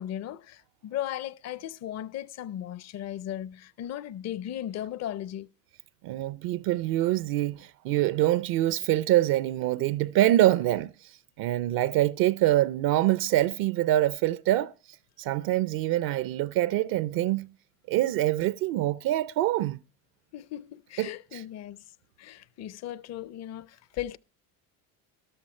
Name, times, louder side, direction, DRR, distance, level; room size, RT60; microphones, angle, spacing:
voice 1, 0.0-5.5 20.3-21.8 22.2-24.2, left 11 dB, 45° left, 0.6 m, -37 dB
voice 2, 6.0-14.7 15.2-17.5 17.9-19.8 21.0-21.4, right 14 dB, 70° right, 0.6 m, -25 dB
13.5 x 12.5 x 4.3 m
cardioid pair, 110°, 36 cm